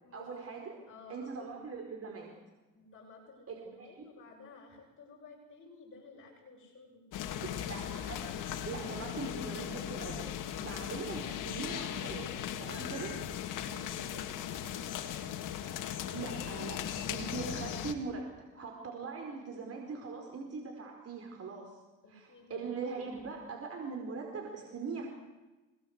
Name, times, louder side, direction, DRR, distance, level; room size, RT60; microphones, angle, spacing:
voice 1, 0.1-0.8 1.1-2.3 3.5-4.1 7.4-10.3 10.6-13.2 16.1-21.8 22.1-25.1, right 4 dB, 40° right, 1 dB, 4.8 m, -41 dB
voice 2, 0.9-1.5 2.7-7.5 13.6-15.5 22.0-22.7, left 3 dB, 35° left, -2 dB, 7.5 m, -54 dB
sound 1, 7.1-17.9, left 10 dB, 60° left, 2.7 m, -38 dB
26.5 x 20.0 x 8.2 m, 1.2 s
supercardioid pair, 90°, 35 cm